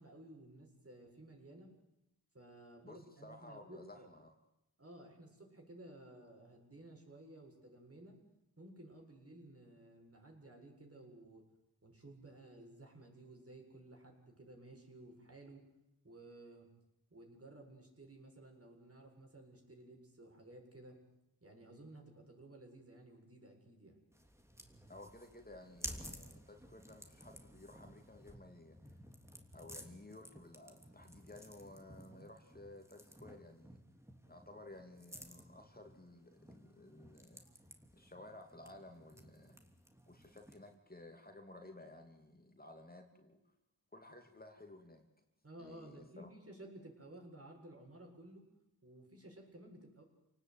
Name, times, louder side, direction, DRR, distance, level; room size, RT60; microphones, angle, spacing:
voice 1, 0.0-1.7 2.3-4.1 4.8-8.2 8.6-11.5 11.8-15.7 16.0-16.7 17.1-21.0 21.4-24.0 45.4-48.5 48.8-50.0, right 1 dB, 35° right, 1 dB, 7.4 m, -55 dB
voice 2, 2.8-4.3 24.9-28.8 29.5-33.8 34.3-37.4 37.9-39.6 40.1-43.4 43.9-45.0 45.6-46.3, left 2 dB, 25° left, 4 dB, 2.9 m, -55 dB
sound 1, 24.1-40.7, equal, 5° right, 3.0 m, -54 dB
28.5 x 18.5 x 9.5 m, 0.87 s
wide cardioid pair, 80°, 39 cm